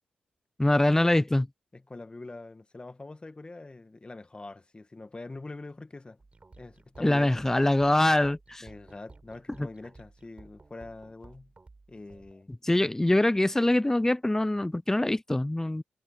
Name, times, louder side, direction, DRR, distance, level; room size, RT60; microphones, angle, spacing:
voice 1, 0.6-1.5 7.0-8.6 9.6-9.7 12.6-15.8, left 1 dB, 15° left, 0.5 m, -24 dB
voice 2, 1.7-6.2 6.6-7.5 8.6-11.5 11.9-12.5, left 2 dB, 30° left, 1.8 m, -44 dB
sound 1, 6.2-12.4, right 3 dB, 35° right, 6.2 m, -54 dB
supercardioid pair, 50°, 4 cm